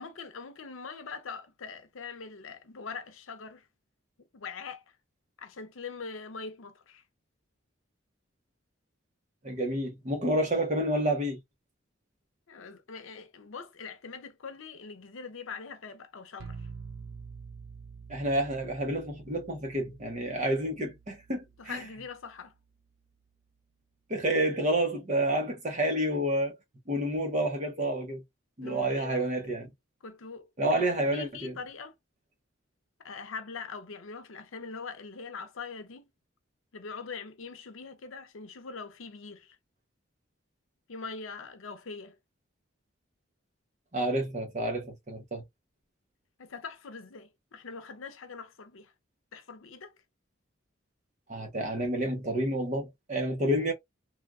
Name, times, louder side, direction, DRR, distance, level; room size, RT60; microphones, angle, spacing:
voice 1, 0.0-3.6 4.3-4.8 5.4-7.0 12.5-16.7 21.6-22.5 28.6-29.2 30.0-31.9 33.0-36.0 36.7-39.6 40.9-42.2 46.4-48.9 49.3-49.9, left 5 dB, 85° left, 0.6 m, -42 dB
voice 2, 9.4-11.4 18.1-21.8 24.1-26.6 26.9-28.2 28.6-29.7 30.6-31.6 43.9-45.4 51.3-53.7, right 1 dB, 35° right, 0.8 m, -29 dB
sound 1, 16.4-22.2, right 5 dB, 80° right, 0.5 m, -47 dB
3.2 x 2.2 x 2.4 m
head